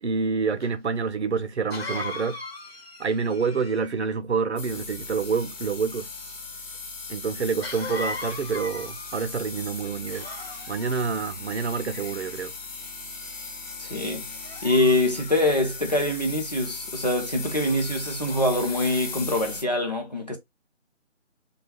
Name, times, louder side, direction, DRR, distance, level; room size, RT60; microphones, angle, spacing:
voice 1, 0.0-2.4 3.0-6.1 7.1-10.3 10.7-12.5, right 5 dB, 60° right, 0.5 m, -27 dB
Cough, 0.6-0.7 1.7-4.1 7.6-9.4 10.1-11.0 11.7-12.4 13.0-13.3 14.3-15.9 17.6-17.8 18.3-19.1, left 3 dB, 50° left, 1.0 m, -39 dB
sound 1, 4.6-19.6, left 4 dB, 85° left, 1.0 m, -38 dB
voice 2, 13.8-14.3 14.6-20.4, left 1 dB, 35° left, 0.5 m, -24 dB
2.3 x 2.3 x 3.1 m
figure-of-eight pair, 160°, 38 cm